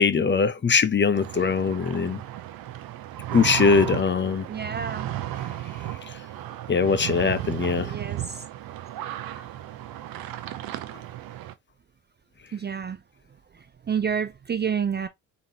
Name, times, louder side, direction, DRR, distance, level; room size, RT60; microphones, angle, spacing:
voice 1, 0.0-2.2 3.3-4.5 6.1-6.2 6.7-7.9, left 5 dB, 30° left, 0.7 m, -21 dB
sound 1, 1.1-11.5, right 13 dB, 65° right, 0.7 m, -34 dB
voice 2, 4.5-5.1 7.8-8.5 12.5-13.0 13.3-15.1, right 7 dB, 30° right, 0.4 m, -30 dB
4.0 x 3.7 x 2.7 m
supercardioid pair, 65°, 38 cm